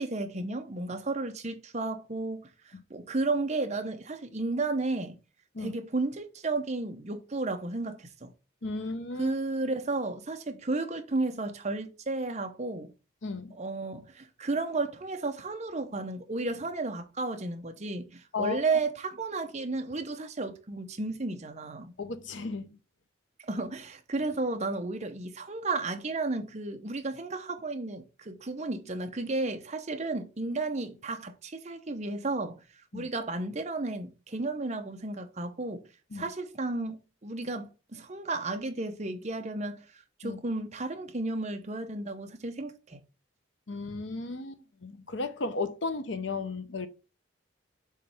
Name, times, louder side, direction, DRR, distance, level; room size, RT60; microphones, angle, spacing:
voice 1, 0.0-5.2 5.6-8.3 9.2-12.9 13.5-21.9 23.5-32.5 32.9-35.8 36.1-39.8 40.2-43.0, right 3 dB, 35° right, 0.9 m, -33 dB
voice 2, 8.6-9.3 13.2-13.5 18.3-18.8 22.0-22.7 32.9-33.1 36.1-36.3 40.2-40.4 43.7-46.9, left 3 dB, 70° left, 0.8 m, -34 dB
7.4 x 3.3 x 5.6 m
head